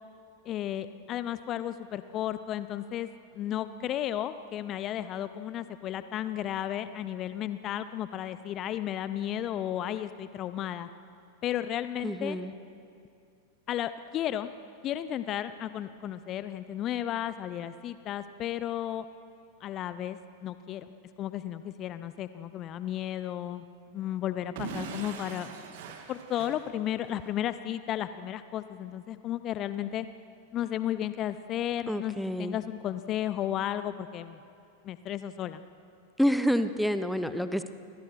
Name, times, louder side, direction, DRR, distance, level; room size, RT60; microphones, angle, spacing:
voice 1, 0.4-3.1 3.3-10.9 11.4-12.4 13.7-14.5 14.8-19.0 19.6-20.9 21.2-23.6 23.9-25.6 26.1-30.1 30.5-34.4 34.8-35.6, left 11 dB, 35° left, 13 dB, 0.9 m, -33 dB
voice 2, 12.0-12.5 31.9-32.5 36.2-37.7, equal, ahead, 11 dB, 1.2 m, -28 dB
Explosion / Shatter, 24.6-27.3, right 6 dB, 50° right, 2.4 m, -41 dB
30.0 x 26.0 x 6.1 m, 2.5 s
figure-of-eight pair, 90°, 0 cm